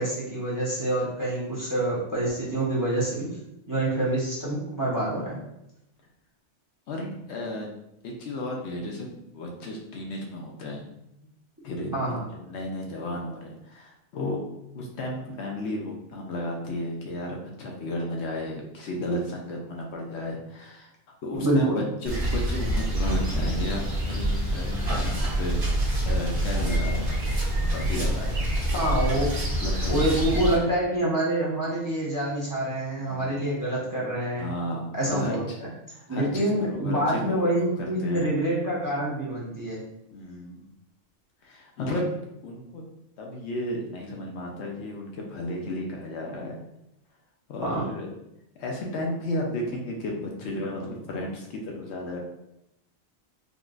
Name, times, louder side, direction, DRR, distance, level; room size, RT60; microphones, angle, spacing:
voice 1, 0.0-3.3 3.7-5.4 11.9-12.2 21.4-21.8 28.7-29.3 29.9-34.5 34.9-35.7 36.1-39.8 47.6-47.9, right 1 dB, 20° right, -6 dB, 0.6 m, -26 dB
voice 2, 6.9-7.7 8.0-10.8 11.6-14.5 14.7-20.9 21.2-27.2 27.6-28.5 29.5-30.0 30.3-30.7 33.0-33.3 34.4-35.4 35.9-37.5 37.8-38.3 40.1-40.6 41.4-42.0 42.4-42.8 43.2-46.6 47.5-48.1 48.6-52.2, left 1 dB, 70° left, 0 dB, 0.8 m, -33 dB
sound 1, 22.0-30.6, right 1 dB, 50° right, 1.1 m, -26 dB
3.7 x 2.1 x 2.4 m, 0.83 s
omnidirectional pair, 1.2 m